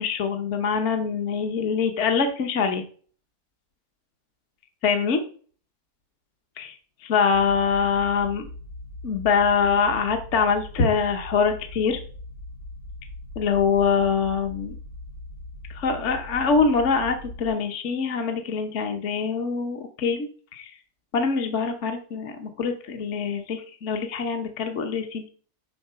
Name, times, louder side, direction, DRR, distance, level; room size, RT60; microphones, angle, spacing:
voice 1, 0.0-2.8 4.8-5.2 6.6-6.7 7.0-8.5 9.0-12.0 13.4-14.8 15.7-20.8 21.1-25.3, left 5 dB, 50° left, 5 dB, 1.2 m, -24 dB
sound 1, 7.3-17.5, left 1 dB, 75° left, 4.5 m, -40 dB
10.5 x 3.9 x 5.5 m, 0.43 s
omnidirectional pair, 1.7 m